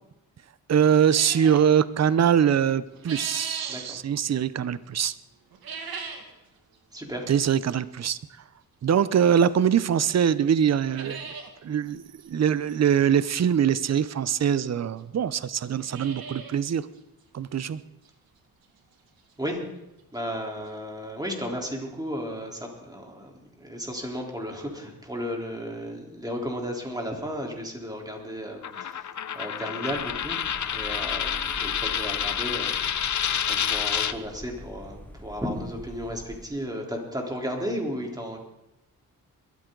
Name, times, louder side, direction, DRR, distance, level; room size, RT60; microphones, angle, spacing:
voice 1, 0.7-5.1 7.3-8.2 8.8-11.3 11.6-16.9 17.3-17.8, right 8 dB, 45° right, 16 dB, 0.7 m, -23 dB
sound 1, 1.1-1.7 2.6-3.8 5.5-6.3 6.7-6.8 7.6-7.7 9.4-9.5 10.0-10.1 10.3-10.4 10.7-11.5 11.9-12.0 12.2-12.3 13.8-13.9 14.7-14.8 15.0-15.1 15.6-16.6 16.9-17.0 17.5-17.6 18.1-18.2 19.9-20.0 20.1-20.2 20.7-20.8, right 5 dB, 90° right, 2.1 m, -39 dB
voice 2, 3.7-4.0 6.9-7.3 19.4-19.6 20.1-30.4 30.7-38.4, equal, 10° right, 0 dB, 3.7 m, -34 dB
Coin (dropping), 28.6-34.1, left 8 dB, 55° left, 0.8 m, -28 dB
sound 2, 29.9-36.5, left 1 dB, 5° left, 1.3 m, -44 dB
22.0 x 13.5 x 3.9 m, 0.90 s
cardioid pair, 90°, 35 cm